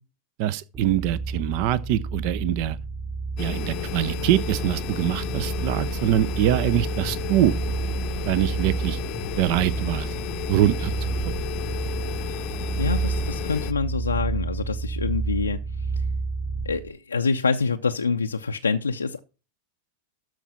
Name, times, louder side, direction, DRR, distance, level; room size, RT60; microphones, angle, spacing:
voice 1, 0.4-2.8 3.4-7.5 8.3-9.0 9.4-10.1 10.5-10.9, right 12 dB, 45° right, 0.5 m, -23 dB
sound 1, 0.7-16.9, right 4 dB, 30° right, 4.5 m, -30 dB
sound 2, 3.4-13.7, left 13 dB, 40° left, 0.7 m, -33 dB
voice 2, 12.8-16.1 16.6-19.2, left 4 dB, 75° left, 0.5 m, -26 dB
13.0 x 4.6 x 5.7 m
figure-of-eight pair, 90°, 0 cm